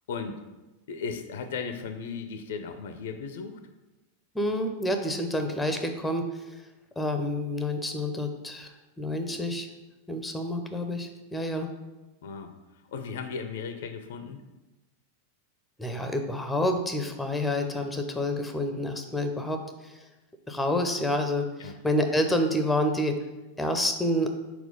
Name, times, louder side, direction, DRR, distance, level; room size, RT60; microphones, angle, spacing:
voice 1, 0.1-0.4 0.9-3.6 12.2-12.5 12.9-14.4 21.6-21.8, left 5 dB, 55° left, 8 dB, 0.5 m, -36 dB
voice 2, 4.3-6.3 7.0-8.7 9.0-9.7 10.1-11.7 15.8-20.0 20.5-23.2 23.6-24.3, left 1 dB, 5° left, 6 dB, 0.6 m, -28 dB
4.4 x 4.2 x 5.3 m, 1.1 s
figure-of-eight pair, 90°, 0 cm